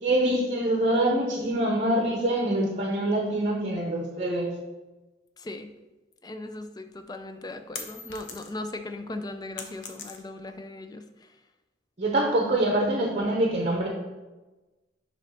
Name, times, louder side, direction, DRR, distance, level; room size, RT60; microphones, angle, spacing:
voice 1, 0.0-4.5 12.0-13.9, right 1 dB, 40° right, 0 dB, 0.8 m, -25 dB
voice 2, 5.4-5.7 6.2-11.3, left 2 dB, 20° left, 8 dB, 0.4 m, -38 dB
sound 1, 6.9-8.8 9.1-10.6, left 5 dB, 70° left, 0.8 m, -41 dB
6.9 x 3.1 x 5.6 m, 1.1 s
head